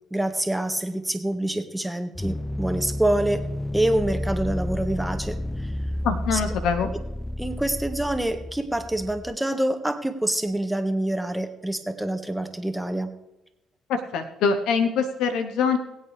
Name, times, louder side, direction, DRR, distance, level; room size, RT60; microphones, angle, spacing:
voice 1, 0.1-3.4 3.7-5.7 6.3-6.4 7.4-13.1, right 1 dB, 5° right, 7 dB, 1.6 m, -26 dB
sound 1, 2.1-9.4, left 1 dB, 15° left, 0.4 m, -31 dB
voice 2, 6.0-6.9 13.9-15.8, left 5 dB, 70° left, 8 dB, 1.0 m, -24 dB
22.0 x 8.8 x 3.4 m, 0.95 s
hypercardioid pair, 50°, 0 cm